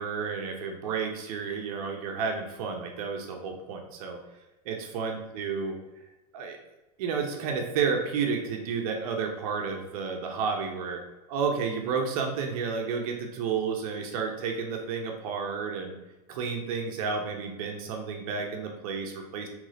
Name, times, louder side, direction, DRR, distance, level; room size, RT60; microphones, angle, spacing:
voice 1, 0.0-4.2 4.6-5.8 6.3-6.6 7.0-11.0 11.3-16.0 16.3-19.5, right 5 dB, 60° right, 2 dB, 1.1 m, -31 dB
5.2 x 3.5 x 5.0 m, 1.1 s
supercardioid pair, 160°, 20 cm